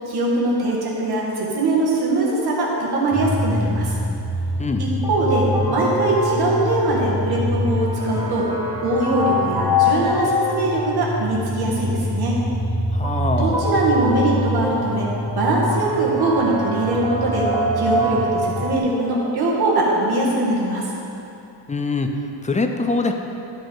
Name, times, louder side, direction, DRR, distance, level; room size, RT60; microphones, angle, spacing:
voice 1, 0.1-3.9 4.8-8.5 8.8-12.4 13.4-15.1 15.4-17.5 17.8-20.9, right 2 dB, 60° right, -4 dB, 1.7 m, -21 dB
sound 1, 3.1-18.8, left 1 dB, 10° right, 0.8 m, -24 dB
voice 2, 12.9-13.8 21.7-23.1, left 3 dB, 20° left, 5 dB, 0.3 m, -24 dB
11.5 x 5.3 x 3.6 m, 2.9 s
wide cardioid pair, 145°, 43 cm